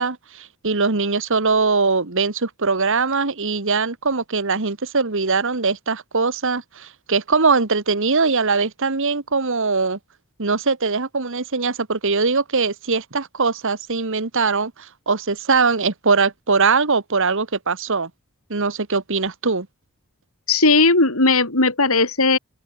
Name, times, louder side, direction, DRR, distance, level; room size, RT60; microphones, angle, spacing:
voice 1, 0.0-10.0 10.4-18.1 18.5-19.7, right 4 dB, 60° right, 1.6 m, -21 dB
voice 2, 20.5-22.4, left 3 dB, 70° left, 4.3 m, -17 dB
open air
head